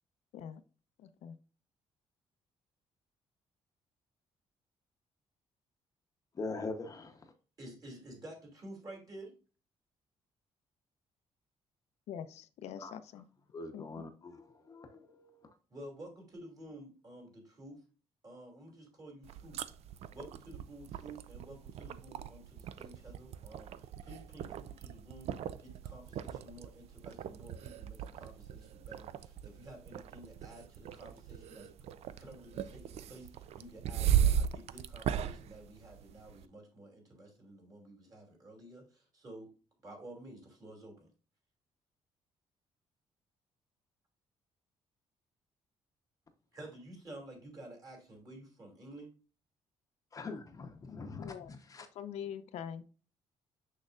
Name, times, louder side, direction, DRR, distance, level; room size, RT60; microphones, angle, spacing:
voice 1, 1.0-1.4 12.1-13.3 13.7-13.9 51.2-51.5 51.9-52.8, left 8 dB, 85° left, 0.6 m, -43 dB
voice 2, 6.3-7.3 12.8-12.9 13.5-15.6 50.1-51.9, left 3 dB, 30° left, 0.8 m, -43 dB
voice 3, 7.6-9.3 15.7-17.8 18.2-19.6 20.1-31.7 32.2-39.5 39.8-41.1 46.5-49.1, right 1 dB, 35° right, 2.6 m, -51 dB
sound 1, 19.2-36.4, right 9 dB, 70° right, 0.4 m, -37 dB
6.5 x 6.3 x 2.4 m
cardioid pair, 145°, 11 cm